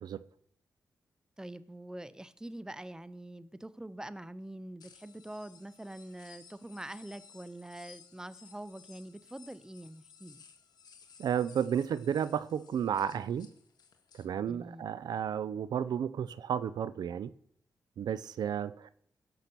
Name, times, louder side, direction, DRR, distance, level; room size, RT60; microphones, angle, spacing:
voice 1, 1.4-10.4 14.5-14.9, right 1 dB, 10° right, 0.8 m, -45 dB
sound 1, 4.8-14.2, left 7 dB, 75° left, 1.6 m, -58 dB
voice 2, 11.2-13.5 14.1-17.3 18.0-18.9, right 8 dB, 80° right, 0.5 m, -32 dB
16.5 x 6.0 x 6.8 m
cardioid pair, 65°, 7 cm